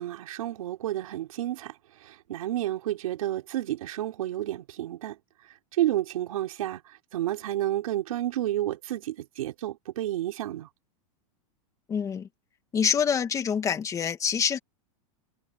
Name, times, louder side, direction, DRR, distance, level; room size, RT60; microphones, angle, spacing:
voice 1, 0.0-1.7 2.0-5.2 5.5-10.7, right 13 dB, 85° right, 4.0 m, -31 dB
voice 2, 11.9-12.3 12.7-14.6, left 7 dB, 20° left, 2.1 m, -26 dB
supercardioid pair, 150°, 17 cm